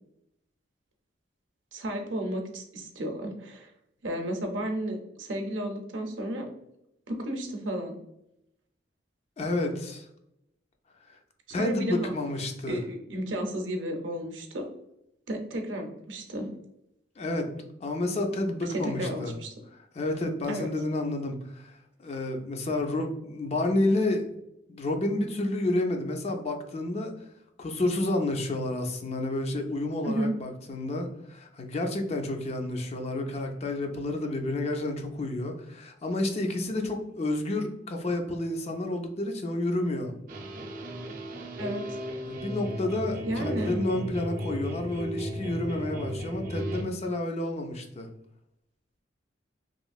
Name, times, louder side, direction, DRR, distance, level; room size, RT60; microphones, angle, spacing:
voice 1, 1.7-3.7 4.0-6.5 7.1-8.0 11.6-12.1 12.7-14.6 15.3-16.5 19.0-19.5 20.5-20.7 30.0-30.4 41.6-42.0 43.2-43.8, right 1 dB, 90° right, 4 dB, 0.6 m, -33 dB
voice 2, 9.4-10.1 11.5-12.8 17.2-17.5 17.8-19.3 19.9-24.3 24.7-27.1 27.6-40.1 42.3-48.1, left 2 dB, 35° left, 4 dB, 0.4 m, -30 dB
sound 1, 40.3-46.8, equal, 50° right, 0.5 m, -35 dB
3.0 x 2.6 x 2.3 m, 0.81 s
head